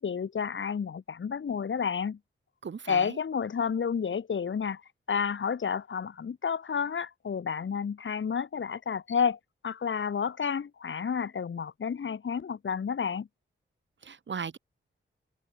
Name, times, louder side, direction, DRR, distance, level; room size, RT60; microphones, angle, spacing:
voice 1, 0.0-2.2 2.9-4.8 5.1-9.4 9.6-13.3, left 6 dB, 70° left, 3.9 m, -30 dB
voice 2, 2.6-3.2 14.0-14.6, right 6 dB, 65° right, 5.4 m, -37 dB
wide cardioid pair, 160°, 21 cm